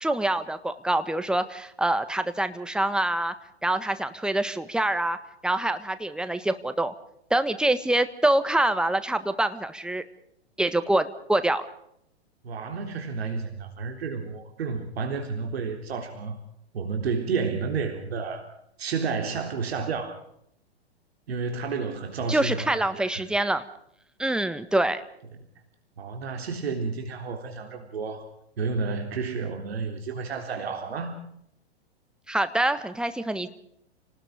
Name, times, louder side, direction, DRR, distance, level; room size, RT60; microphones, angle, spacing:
voice 1, 0.0-3.3 3.6-5.2 5.4-6.9 7.3-10.0 10.6-11.7 22.3-23.6 24.2-25.0 32.3-33.5, right 1 dB, 5° right, 10 dB, 1.5 m, -25 dB
voice 2, 12.4-16.4 16.7-18.5 18.8-20.1 21.3-23.2 26.0-28.3 28.6-31.2, right 5 dB, 70° right, 4 dB, 3.9 m, -31 dB
29.5 x 19.5 x 5.2 m, 0.73 s
hypercardioid pair, 120°, 32 cm